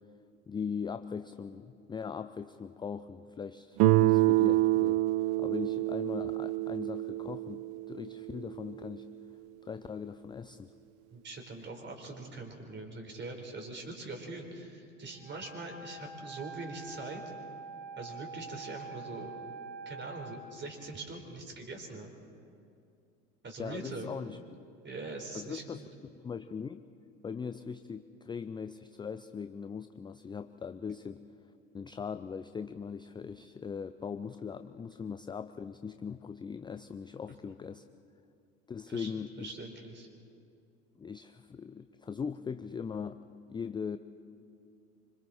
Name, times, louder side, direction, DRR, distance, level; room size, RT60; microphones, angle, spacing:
voice 1, 0.5-9.1 9.6-10.7 23.6-24.4 25.3-26.8 27.2-31.2 31.7-37.8 38.7-39.5 41.0-43.2 43.5-44.0, left 6 dB, 10° left, 10 dB, 0.5 m, -40 dB
Guitar, 3.8-8.6, right 18 dB, 50° right, 0.7 m, -27 dB
voice 2, 11.1-17.2 18.0-19.3 19.9-22.1 23.4-24.1 24.8-25.9 38.9-40.1, right 2 dB, 30° right, 3 dB, 4.3 m, -43 dB
Wind instrument woodwind instrument, 15.1-20.4, right 4 dB, 80° right, 2.4 m, -45 dB
26.0 x 25.0 x 4.3 m, 2.4 s
figure-of-eight pair, 75°, 39 cm